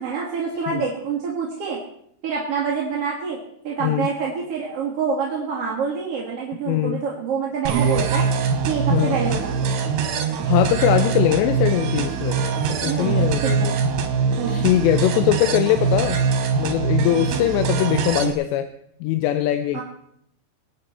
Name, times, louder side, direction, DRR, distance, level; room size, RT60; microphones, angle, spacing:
voice 1, 0.0-1.8 2.2-3.4 3.6-8.3 8.7-9.7 12.8-13.7 14.4-14.7 19.7-19.8, right 6 dB, 45° right, -3 dB, 2.3 m, -26 dB
voice 2, 6.7-7.0 8.9-9.2 10.5-12.4 12.7-13.7 14.5-16.2 16.6-18.7 19.0-19.8, left 13 dB, 85° left, 10 dB, 2.8 m, -21 dB
sound 1, 7.7-18.3, right 5 dB, 75° right, 3.6 m, -22 dB
24.0 x 9.6 x 4.3 m, 0.70 s
omnidirectional pair, 5.0 m